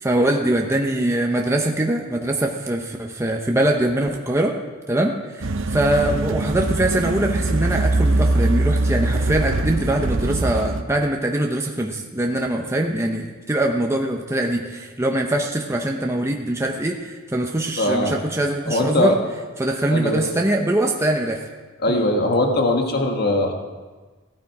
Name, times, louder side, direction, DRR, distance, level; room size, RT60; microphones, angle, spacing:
voice 1, 0.0-4.5 4.9-19.2 19.6-21.5 21.9-22.1, right 1 dB, 15° right, 1 dB, 0.9 m, -22 dB
sound 1, 5.4-10.8, right 2 dB, 65° right, 0.7 m, -22 dB
voice 2, 17.8-18.2 18.7-19.1 19.9-20.2 21.8-23.5, left 1 dB, 50° left, 3 dB, 1.7 m, -20 dB
15.5 x 12.5 x 4.8 m, 1.4 s
head